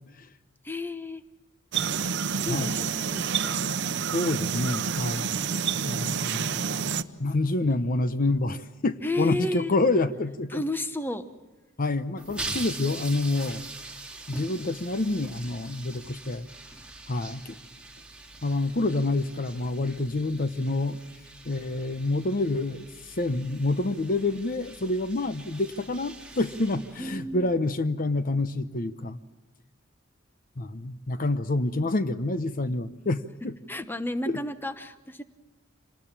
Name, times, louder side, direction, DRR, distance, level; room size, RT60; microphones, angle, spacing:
voice 1, 0.6-1.2 2.5-3.5 9.0-9.7 10.5-11.3 27.0-27.5 33.7-35.2, left 1 dB, 10° left, 10 dB, 1.0 m, -32 dB
sound 1, 1.7-7.0, right 6 dB, 60° right, 0.8 m, -28 dB
voice 2, 4.1-5.3 5.8-6.7 7.2-10.6 11.8-13.6 14.3-16.5 17.1-17.6 18.4-21.0 21.4-29.2 30.6-33.5 34.3-34.4, left 2 dB, 45° left, 11 dB, 0.8 m, -27 dB
sound 2, 12.2-27.6, right 2 dB, 5° right, 2.2 m, -43 dB
27.0 x 19.5 x 7.4 m, 1.2 s
head